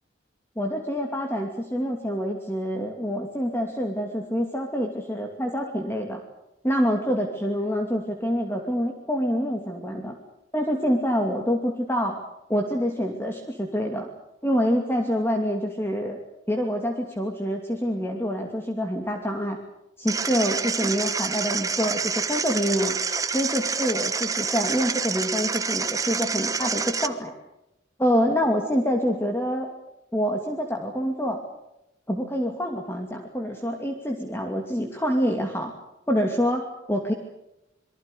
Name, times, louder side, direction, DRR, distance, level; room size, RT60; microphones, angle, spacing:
voice 1, 0.6-6.2 6.6-10.1 10.5-12.2 12.5-14.1 14.4-16.2 16.5-19.6 20.0-23.0 23.3-27.3 28.0-29.7 30.1-31.4 32.1-35.7 36.1-37.1, equal, 10° left, 2 dB, 2.5 m, -26 dB
sound 1, 20.1-27.1, right 5 dB, 20° right, 1.2 m, -28 dB
28.0 x 23.0 x 6.8 m, 0.88 s
head